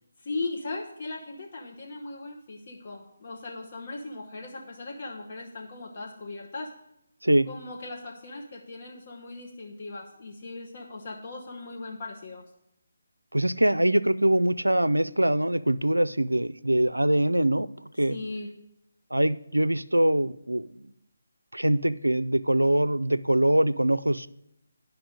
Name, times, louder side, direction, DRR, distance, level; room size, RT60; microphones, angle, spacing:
voice 1, 0.2-6.7 7.5-12.4 18.1-18.5, left 3 dB, 40° left, 1 dB, 1.0 m, -38 dB
voice 2, 13.3-17.7 18.0-18.2 19.1-20.9 21.5-24.3, right 1 dB, 85° right, 17 dB, 0.4 m, -23 dB
9.9 x 5.9 x 5.1 m, 0.80 s
figure-of-eight pair, 150°, 0 cm